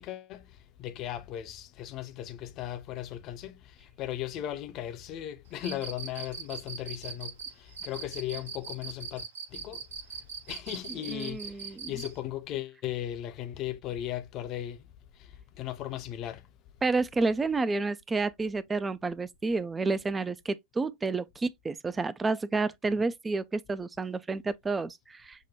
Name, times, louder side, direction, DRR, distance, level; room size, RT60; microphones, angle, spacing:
voice 1, 0.0-9.9 10.5-14.9 15.1-16.5, left 12 dB, 35° left, 0.6 m, -37 dB
Cricket, 5.6-12.2, right 6 dB, 60° right, 0.8 m, -40 dB
voice 2, 10.9-12.0 16.8-25.5, right 3 dB, 15° right, 0.3 m, -30 dB
6.1 x 2.2 x 2.7 m
figure-of-eight pair, 90°, 0 cm